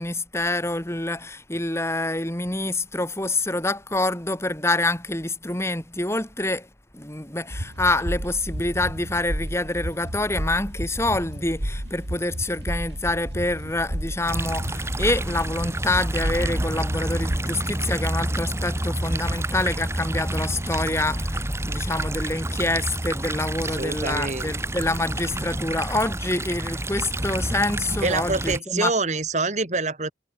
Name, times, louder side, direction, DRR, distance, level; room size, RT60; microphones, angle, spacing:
voice 1, 0.0-6.7 6.9-28.9, left 2 dB, 15° left, 4.0 m, -26 dB
sound 1, 7.5-17.4, equal, 75° right, 4.4 m, -32 dB
sound 2, 14.2-28.6, right 1 dB, 15° right, 2.1 m, -28 dB
voice 2, 23.7-24.6 28.0-30.1, right 3 dB, 40° right, 2.7 m, -26 dB
head